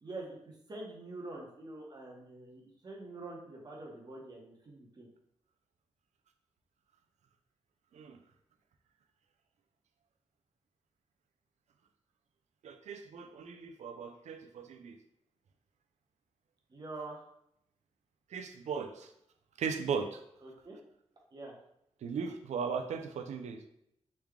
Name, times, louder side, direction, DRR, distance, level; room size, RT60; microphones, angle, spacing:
voice 1, 0.0-5.1 16.7-17.3 20.4-20.8 21.3-21.6, right 2 dB, 35° right, -1 dB, 0.9 m, -45 dB
voice 2, 12.6-14.9 18.3-19.1 19.6-20.2 22.0-23.6, right 6 dB, 85° right, 6 dB, 0.4 m, -37 dB
3.2 x 2.3 x 3.5 m, 0.76 s
wide cardioid pair, 100°, 12 cm